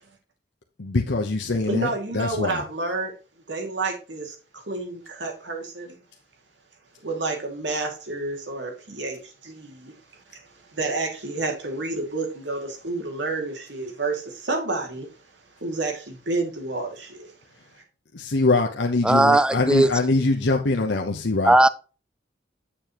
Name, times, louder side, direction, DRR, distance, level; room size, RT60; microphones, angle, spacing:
voice 1, 0.8-2.6 18.1-21.6, left 2 dB, 75° left, 0.9 m, -23 dB
voice 2, 1.7-3.1 3.5-6.0 7.0-15.1 15.6-17.3, right 3 dB, 75° right, 2.4 m, -30 dB
voice 3, 19.0-19.9 21.4-21.7, right 1 dB, 5° right, 0.3 m, -17 dB
8.8 x 7.0 x 3.0 m
head